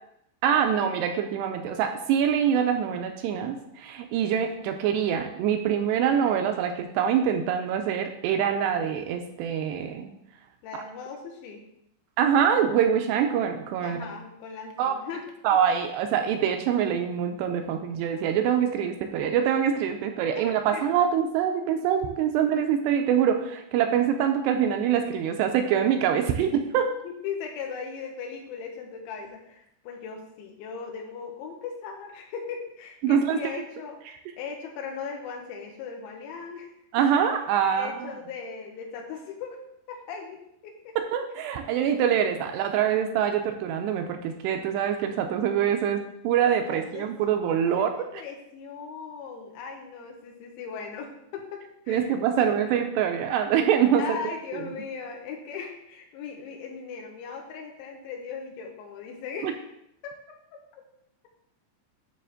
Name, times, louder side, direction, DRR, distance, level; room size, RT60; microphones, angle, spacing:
voice 1, 0.4-10.1 12.2-14.1 14.8-15.0 15.4-26.9 33.0-33.4 36.9-38.1 41.0-47.9 51.9-54.0 59.4-59.5, right 8 dB, 85° right, 5 dB, 2.5 m, -24 dB
voice 2, 10.6-11.7 13.8-15.3 20.4-20.8 27.0-34.0 34.4-36.7 37.1-37.2 37.7-39.6 39.9-41.0 42.9-43.0 46.7-47.1 47.6-52.8 54.0-59.6 60.0-60.4 60.8-60.9, left 6 dB, 80° left, 1 dB, 3.2 m, -38 dB
9.2 x 3.3 x 6.4 m, 0.78 s
omnidirectional pair, 5.2 m